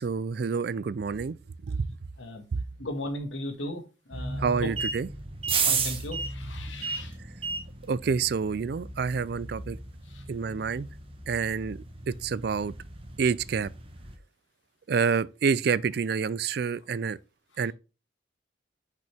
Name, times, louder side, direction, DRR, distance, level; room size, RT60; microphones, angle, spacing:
voice 1, 0.0-1.4 1.7-1.9 4.4-5.1 7.9-9.8 10.3-10.9 11.3-11.8 12.1-12.7 13.2-13.7 14.9-17.2 17.6-17.7, right 5 dB, 55° right, 0.3 m, -28 dB
voice 2, 2.8-3.8 4.1-4.7 5.6-7.2 10.1-10.2, left 1 dB, 85° left, 1.7 m, -36 dB
sound 1, 4.1-14.1, right 4 dB, 30° right, 1.2 m, -34 dB
6.3 x 5.3 x 3.4 m
head